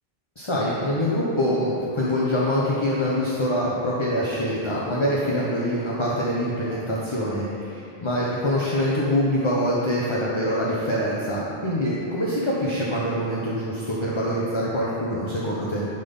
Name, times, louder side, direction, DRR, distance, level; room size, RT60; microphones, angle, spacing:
voice 1, 0.4-15.8, equal, 30° left, -6 dB, 1.0 m, -25 dB
10.5 x 4.1 x 5.5 m, 2.5 s
omnidirectional pair, 1.1 m